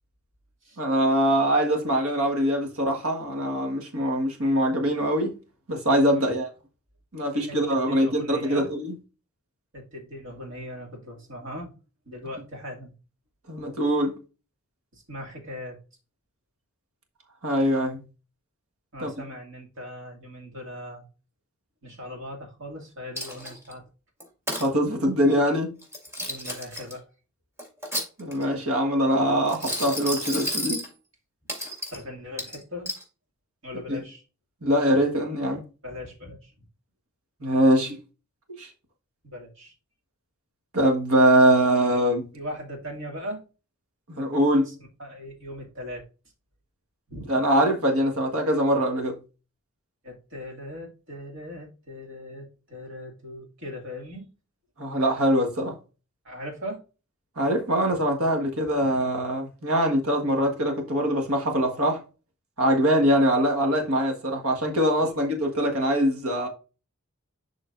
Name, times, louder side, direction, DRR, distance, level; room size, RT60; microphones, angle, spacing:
voice 1, 0.8-5.3 5.7-6.5 7.1-8.9 13.5-14.1 17.4-18.0 19.0-19.1 24.6-25.7 28.2-30.8 33.9-34.0 34.6-35.6 37.4-38.0 38.6-38.7 40.7-42.3 44.1-44.7 47.3-49.1 54.8-55.7 57.4-62.0 62.6-66.5, equal, 80° right, 1.6 m, -23 dB
voice 2, 7.3-8.7 9.7-11.7 12.1-12.9 14.9-15.8 18.9-21.1 21.8-23.8 26.2-27.1 31.9-32.9 33.6-34.2 35.8-36.5 39.2-39.7 42.3-43.4 44.6-44.7 45.0-46.1 47.1-47.3 50.0-54.3 56.2-56.8 57.9-58.0 58.6-59.0 65.0-65.1, left 1 dB, 65° right, 2.3 m, -39 dB
Coin (dropping), 23.2-23.7 24.2-24.7 25.8-26.9 27.6-28.5 29.5-30.9 31.5-32.0 32.4-33.0, equal, 15° right, 2.1 m, -32 dB
11.0 x 3.8 x 2.6 m
head